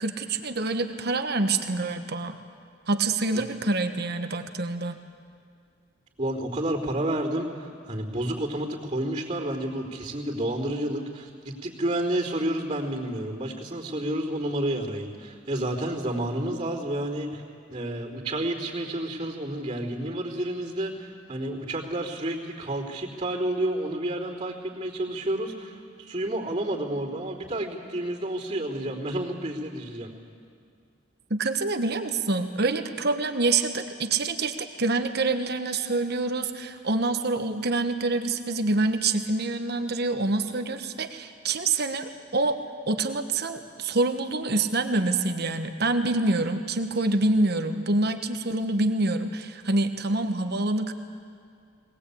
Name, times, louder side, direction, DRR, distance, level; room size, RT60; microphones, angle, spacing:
voice 1, 0.0-2.4 2.9-5.0 31.3-42.6 42.9-50.9, right 2 dB, 60° right, 7 dB, 1.3 m, -26 dB
voice 2, 6.2-17.4 17.7-30.1, right 1 dB, 35° right, -12 dB, 3.6 m, -30 dB
21.5 x 19.0 x 8.6 m, 2.3 s
head